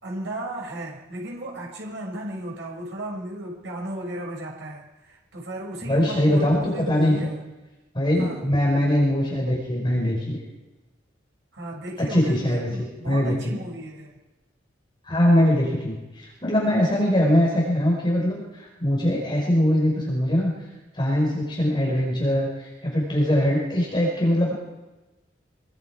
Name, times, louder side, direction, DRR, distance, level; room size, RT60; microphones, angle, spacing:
voice 1, 0.0-7.4 8.2-8.4 11.5-14.2, right 1 dB, 70° right, -1 dB, 6.1 m, -35 dB
voice 2, 5.9-7.2 7.9-10.4 12.0-13.6 15.0-20.5 20.9-24.5, equal, 25° left, -2 dB, 5.0 m, -22 dB
25.5 x 22.5 x 4.8 m, 1.1 s
head